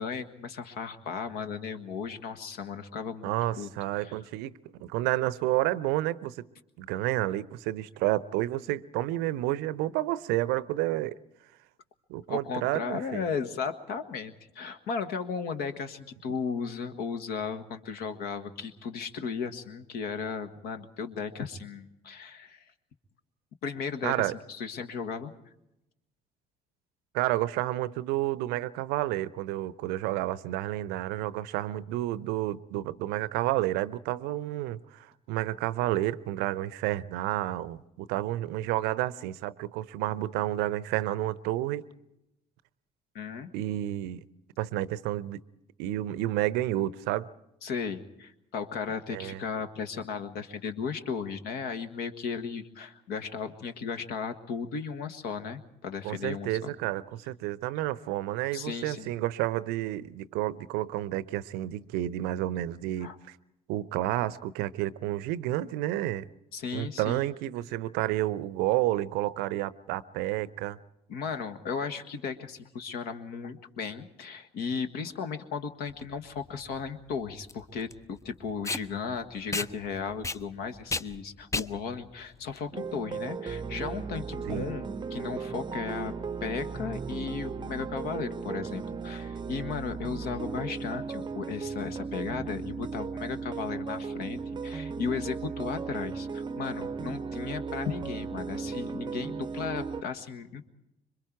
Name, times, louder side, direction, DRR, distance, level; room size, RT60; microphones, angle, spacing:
voice 1, 0.0-3.7 4.0-4.1 12.3-22.6 23.6-25.3 43.1-43.5 47.6-56.7 58.5-59.1 63.0-63.2 66.5-67.3 71.1-86.1 86.4-100.6, left 6 dB, 55° left, 1.5 m, -35 dB
voice 2, 3.2-6.5 6.8-11.1 12.1-13.2 24.0-24.3 27.1-41.9 43.5-44.2 44.6-45.4 45.8-47.3 49.1-49.4 56.0-63.4 63.7-66.3 66.7-70.8 84.5-84.7, right 15 dB, 60° right, 0.7 m, -30 dB
Packing tape duct tape, 75.9-83.4, left 3 dB, 15° left, 0.7 m, -36 dB
sound 1, 82.7-100.0, right 5 dB, 25° right, 0.8 m, -36 dB
26.0 x 23.5 x 4.6 m
figure-of-eight pair, 50°, 19 cm